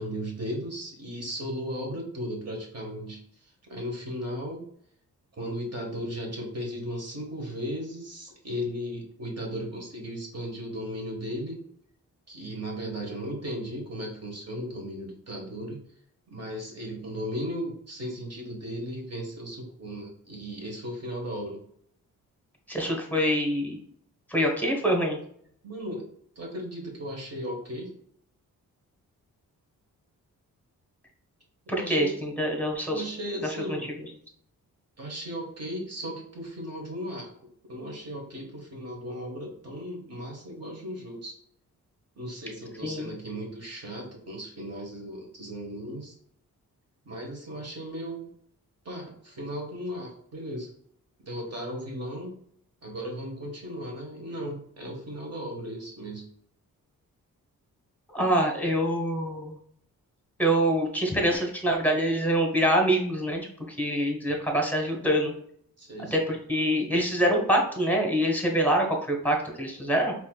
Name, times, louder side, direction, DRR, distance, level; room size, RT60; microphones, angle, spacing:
voice 1, 0.0-4.6 5.3-11.6 12.3-15.8 16.3-21.6 25.6-26.1 26.3-27.9 31.7-32.2 32.8-33.9 35.0-37.3 37.7-41.4 42.1-46.1 47.0-48.3 48.8-50.7 51.2-52.4 52.8-56.3 65.8-66.3, equal, 45° right, 1 dB, 1.5 m, -36 dB
voice 2, 22.7-23.8 24.3-25.2 31.7-33.0 33.4-34.1 42.8-43.1 58.1-59.6 60.4-65.3 66.1-70.1, equal, 5° left, 1 dB, 1.2 m, -25 dB
4.3 x 3.0 x 2.3 m, 0.64 s
cardioid pair, 65°, 34 cm